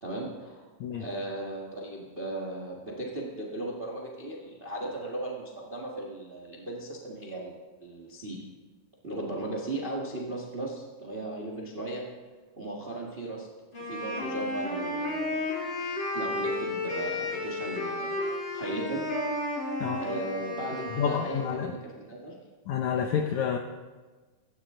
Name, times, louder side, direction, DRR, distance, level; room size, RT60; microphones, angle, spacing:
voice 1, 0.0-0.6 1.0-7.5 7.8-8.5 9.0-12.1 12.6-13.5 13.8-15.4 16.1-19.0 20.0-22.4, right 2 dB, 65° right, -1 dB, 0.5 m, -36 dB
Wind instrument woodwind instrument, 13.7-21.6, left 2 dB, 30° left, 4.2 m, -33 dB
voice 2, 21.0-21.7 22.7-23.6, left 8 dB, 80° left, 4 dB, 1.6 m, -29 dB
16.5 x 14.0 x 3.8 m, 1.3 s
omnidirectional pair, 4.3 m